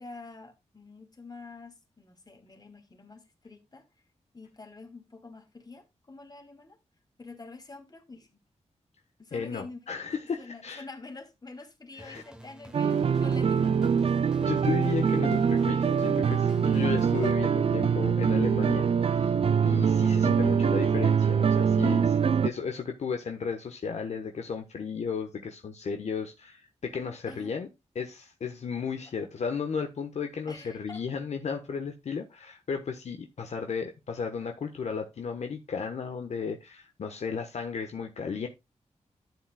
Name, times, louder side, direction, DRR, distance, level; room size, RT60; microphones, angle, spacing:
voice 1, 0.0-3.9 4.3-6.8 7.2-8.4 9.2-9.8 10.4-13.9 27.3-27.5 29.1-29.3 30.5-31.0, left 3 dB, 35° left, 2.8 m, -47 dB
voice 2, 9.3-10.8 12.0-12.2 14.4-19.3 19.6-27.7 27.9-38.5, left 5 dB, 70° left, 1.2 m, -34 dB
sound 1, 12.0-17.3, right 1 dB, 5° right, 1.2 m, -49 dB
sound 2, 12.7-22.5, right 7 dB, 55° right, 0.5 m, -24 dB
12.5 x 7.7 x 2.3 m
cardioid pair, 75°, 12 cm